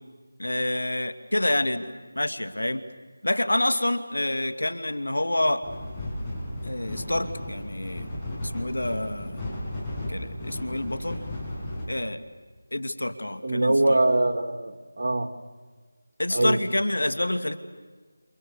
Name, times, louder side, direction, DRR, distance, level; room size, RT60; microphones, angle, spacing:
voice 1, 0.4-2.8 3.2-5.6 6.6-8.1 8.4-9.4 10.1-11.2 11.9-12.2 12.7-14.0 16.2-17.6, left 1 dB, 85° left, 11 dB, 2.2 m, -27 dB
sound 1, 5.6-11.8, left 1 dB, 10° left, 7.2 m, -34 dB
voice 2, 13.4-15.3 16.3-16.6, right 2 dB, 65° right, 7 dB, 2.6 m, -23 dB
29.5 x 29.0 x 6.9 m, 1.4 s
figure-of-eight pair, 165°, 0 cm